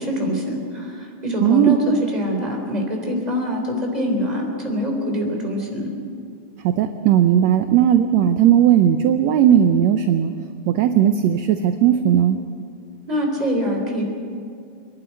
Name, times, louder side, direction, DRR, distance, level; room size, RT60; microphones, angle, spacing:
voice 1, 0.0-5.9 13.1-14.0, equal, 10° right, 0 dB, 3.6 m, -24 dB
voice 2, 1.4-1.8 6.6-10.3 10.7-12.4, right 10 dB, 75° right, 8 dB, 1.8 m, -16 dB
25.0 x 11.0 x 9.4 m, 2.3 s
omnidirectional pair, 3.6 m